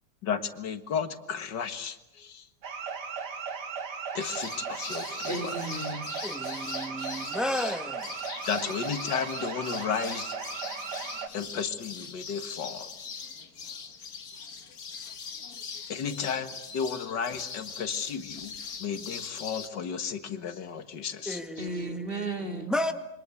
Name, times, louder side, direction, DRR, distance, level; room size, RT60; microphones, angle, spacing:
voice 1, 0.2-2.5 4.1-5.5 8.5-10.3 11.3-12.9 15.9-18.5 18.8-21.7, left 6 dB, 85° left, 2.2 m, -33 dB
sound 1, 2.6-11.3, right 6 dB, 70° right, 2.2 m, -36 dB
sound 2, 4.2-19.7, left 6 dB, 60° left, 2.1 m, -41 dB
voice 2, 5.3-6.1 21.6-22.7, right 2 dB, 30° right, 3.0 m, -34 dB
voice 3, 6.2-8.1 21.2-22.0 22.5-22.9, left 1 dB, ahead, 1.8 m, -32 dB
27.5 x 24.5 x 8.4 m
omnidirectional pair, 1.8 m